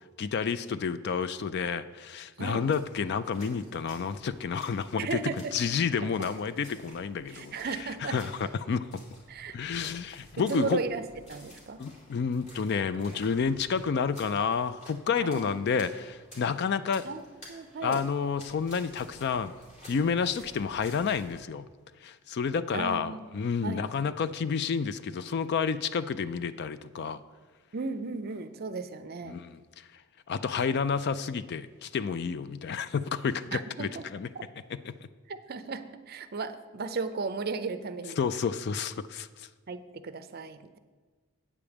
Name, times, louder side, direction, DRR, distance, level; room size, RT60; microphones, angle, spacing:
voice 1, 0.2-5.2 5.5-7.5 8.0-8.3 8.6-8.9 9.5-10.8 11.8-17.0 17.8-19.5 19.9-21.6 22.0-27.2 29.3-29.6 30.3-34.3 34.9-35.1 38.2-39.5, left 6 dB, 50° left, 14 dB, 0.3 m, -30 dB
sound 1, 2.5-21.4, equal, 30° left, 2.4 m, -53 dB
voice 2, 5.0-5.5 6.0-6.1 7.3-8.2 9.3-9.6 10.4-11.8 15.2-15.6 17.0-17.2 17.5-18.0 22.7-23.2 23.6-23.9 27.7-29.4 33.5-34.0 35.3-38.2 39.7-40.8, right 4 dB, 45° right, 11 dB, 0.5 m, -35 dB
8.6 x 5.1 x 7.1 m, 1.4 s
head